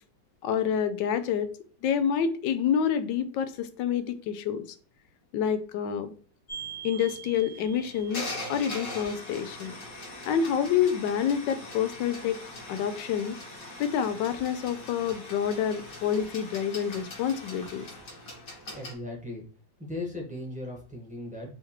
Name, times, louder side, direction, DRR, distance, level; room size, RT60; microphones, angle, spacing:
voice 1, 0.4-1.5 1.8-4.6 5.3-6.1 6.8-9.7 10.3-12.4 12.7-13.4 13.8-17.9, left 8 dB, 85° left, 11 dB, 1.2 m, -28 dB
sound 1, 6.5-18.9, left 1 dB, 55° left, 1.7 m, -41 dB
voice 2, 18.7-19.4 19.8-21.5, left 2 dB, 5° right, -2 dB, 1.0 m, -37 dB
4.8 x 3.2 x 3.0 m, 0.43 s
omnidirectional pair, 1.9 m